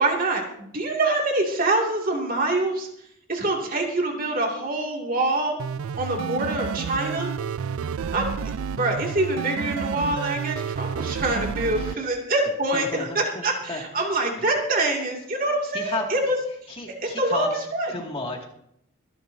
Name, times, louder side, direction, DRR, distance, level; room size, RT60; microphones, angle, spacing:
voice 1, 0.0-2.9 3.3-5.6 6.0-7.3 8.1-8.4 8.7-16.4 17.0-17.9, right 2 dB, 45° right, 0 dB, 2.5 m, -25 dB
sound 1, 5.6-12.0, right 6 dB, 85° right, 0.4 m, -30 dB
voice 2, 11.7-12.1 12.7-14.1 14.4-14.5 15.7-16.1 16.7-18.4, left 2 dB, 25° left, 0 dB, 2.3 m, -33 dB
24.5 x 11.0 x 2.8 m, 0.73 s
head